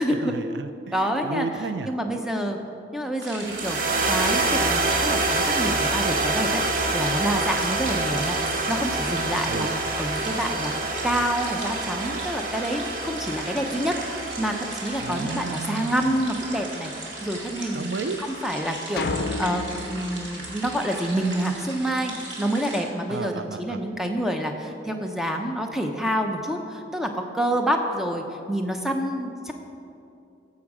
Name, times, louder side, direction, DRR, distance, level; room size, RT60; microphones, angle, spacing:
voice 1, 0.1-1.9 9.5-9.7 15.0-16.2 17.7-18.2 23.1-23.8, right 4 dB, 75° right, 10 dB, 0.5 m, -33 dB
voice 2, 0.9-1.5 1.9-2.6 2.9-9.7 10.0-16.9 17.2-17.9 18.4-29.5, equal, ahead, 3 dB, 0.7 m, -27 dB
sound 1, 3.2-22.8, right 2 dB, 90° right, 2.4 m, -38 dB
sound 2, 3.4-17.9, right 3 dB, 50° right, 0.9 m, -27 dB
sound 3, 19.0-21.4, left 2 dB, 55° left, 0.5 m, -31 dB
13.5 x 7.4 x 4.9 m, 2.6 s
head